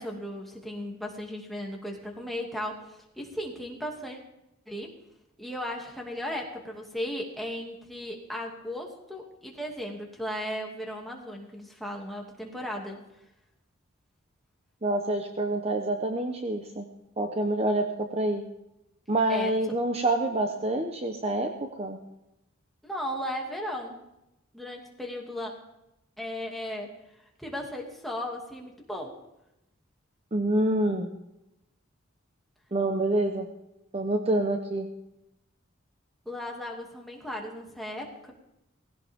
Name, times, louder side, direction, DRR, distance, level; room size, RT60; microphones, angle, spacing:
voice 1, 0.0-4.2 4.7-4.9 5.4-13.0 19.3-19.5 22.8-24.0 24.5-25.5 26.2-26.9 27.4-29.2 36.3-38.3, equal, ahead, -1 dB, 2.5 m, -36 dB
voice 2, 14.8-16.9 17.2-18.4 19.1-22.0 30.3-31.1 32.7-33.5 33.9-34.9, right 1 dB, 30° right, 4 dB, 1.0 m, -27 dB
18.5 x 16.5 x 3.7 m, 0.88 s
head